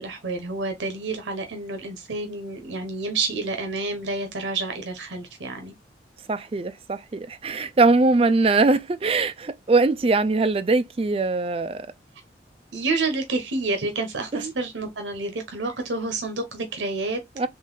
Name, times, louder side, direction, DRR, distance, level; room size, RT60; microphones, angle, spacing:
voice 1, 0.0-5.7 12.7-17.2, right 3 dB, 90° right, 0.9 m, -29 dB
voice 2, 6.3-11.9 14.3-14.5 17.4-17.5, right 3 dB, 30° right, 0.4 m, -21 dB
3.9 x 3.1 x 3.9 m
head